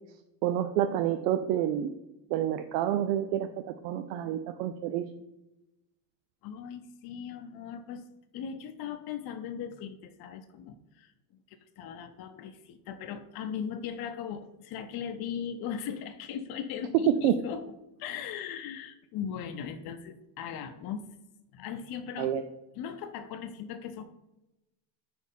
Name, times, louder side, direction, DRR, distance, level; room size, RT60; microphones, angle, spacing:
voice 1, 0.4-1.9 2.3-5.1 17.2-17.4 22.2-22.4, right 11 dB, 85° right, 8 dB, 0.6 m, -28 dB
voice 2, 6.4-8.1 8.3-11.1 11.5-17.7 18.0-21.1 21.5-22.3 22.7-24.0, left 8 dB, 50° left, 7 dB, 0.6 m, -38 dB
4.7 x 4.4 x 5.3 m, 0.94 s
supercardioid pair, 105°, 50 cm